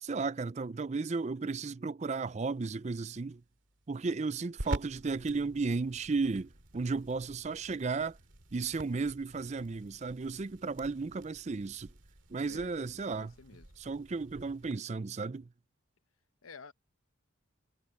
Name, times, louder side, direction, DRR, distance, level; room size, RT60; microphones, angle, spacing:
voice 1, 0.0-3.4 3.9-8.2 8.5-11.9 12.3-13.3 13.8-15.5, right 4 dB, 35° right, 0.4 m, -34 dB
sound 1, 2.5-14.7, right 1 dB, 65° right, 2.3 m, -47 dB
voice 2, 12.5-13.7 16.4-16.7, left 4 dB, 90° left, 0.9 m, -51 dB
head